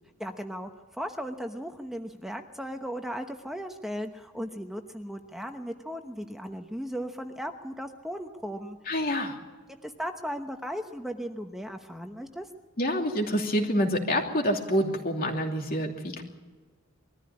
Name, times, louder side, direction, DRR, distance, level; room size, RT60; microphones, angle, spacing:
voice 1, 0.2-0.7 1.0-8.8 9.7-12.5, equal, ahead, 5 dB, 1.0 m, -36 dB
voice 2, 8.9-9.4 12.8-16.2, equal, 45° left, 2 dB, 2.8 m, -27 dB
22.0 x 14.0 x 9.9 m, 1.3 s
head